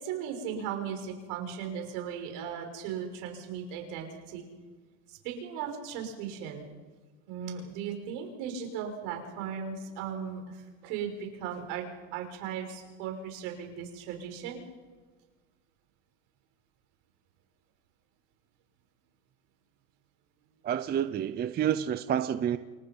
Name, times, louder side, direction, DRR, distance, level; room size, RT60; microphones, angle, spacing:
voice 1, 0.0-4.5 5.1-6.7 7.3-11.8 12.1-14.6, right 7 dB, 65° right, 3 dB, 6.2 m, -37 dB
voice 2, 20.6-22.6, right 9 dB, 25° right, 12 dB, 0.6 m, -29 dB
29.5 x 24.0 x 5.5 m, 1.4 s
supercardioid pair, 135°, 41 cm